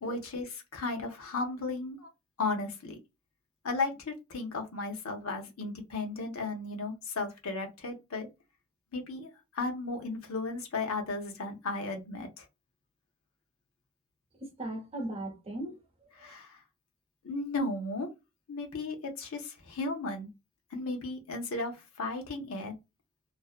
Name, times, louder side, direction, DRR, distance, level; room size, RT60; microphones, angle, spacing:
voice 1, 0.0-2.1 2.4-3.0 3.6-8.3 8.9-12.5 16.2-16.6 17.2-18.1 18.5-20.3 20.7-22.7, left 3 dB, 70° left, 0.7 m, -35 dB
voice 2, 14.4-16.3, right 1 dB, 25° right, 0.7 m, -39 dB
2.5 x 2.1 x 2.4 m
head